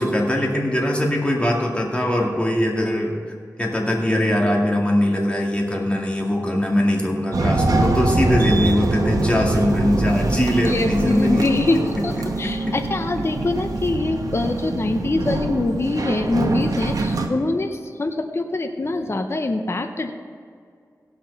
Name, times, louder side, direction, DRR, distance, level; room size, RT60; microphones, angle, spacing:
voice 1, 0.0-3.1 3.6-11.5 12.0-12.1 12.4-12.7, left 1 dB, 15° left, -2 dB, 2.3 m, -21 dB
sound 1, 7.3-17.3, right 2 dB, 70° right, 1.0 m, -24 dB
voice 2, 10.7-20.1, left 2 dB, 40° left, 6 dB, 0.8 m, -24 dB
16.5 x 6.0 x 5.4 m, 2.2 s
wide cardioid pair, 70°, 7 cm